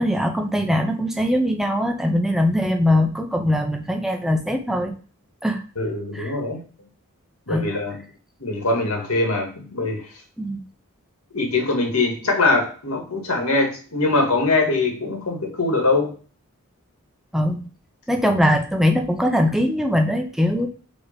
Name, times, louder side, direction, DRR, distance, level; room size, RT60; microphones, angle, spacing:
voice 1, 0.0-4.9 5.4-5.6 6.1-6.3 7.5-7.7 10.4-10.6 17.3-17.6 18.1-20.7, left 1 dB, ahead, 3 dB, 0.7 m, -21 dB
voice 2, 5.8-6.6 7.5-8.0 8.4-10.0 11.3-16.1, left 2 dB, 80° left, 2 dB, 1.8 m, -22 dB
4.6 x 4.2 x 5.2 m, 0.39 s
head